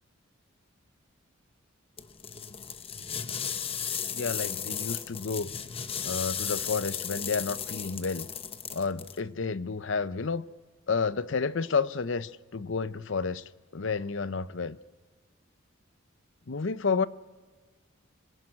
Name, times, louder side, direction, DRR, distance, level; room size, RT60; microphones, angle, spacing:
sound 1, 2.0-9.2, left 7 dB, 30° left, 0.8 m, -35 dB
voice 1, 4.1-5.5 6.0-8.3 8.7-10.4 10.9-13.4 13.7-14.8 16.5-17.1, left 5 dB, 65° left, 0.7 m, -30 dB
26.0 x 17.5 x 9.7 m
head